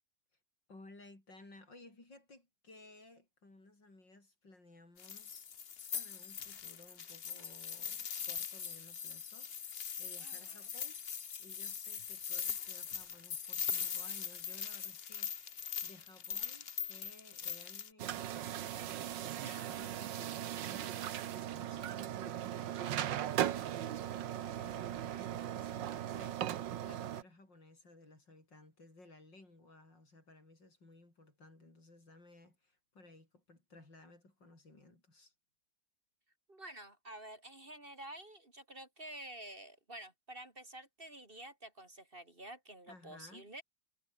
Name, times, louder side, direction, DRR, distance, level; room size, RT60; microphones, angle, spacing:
voice 1, 0.7-5.5 5.9-11.0 11.4-35.3 42.9-43.5, left 2 dB, 80° left, 8.1 m, -59 dB
sound 1, 5.0-17.9, left 7 dB, 40° left, 1.0 m, -41 dB
voice 2, 10.2-10.6 19.4-19.8 36.5-43.6, right 1 dB, 30° right, 3.0 m, -50 dB
sound 2, 18.0-27.2, right 11 dB, 85° right, 1.7 m, -38 dB
omnidirectional pair, 1.9 m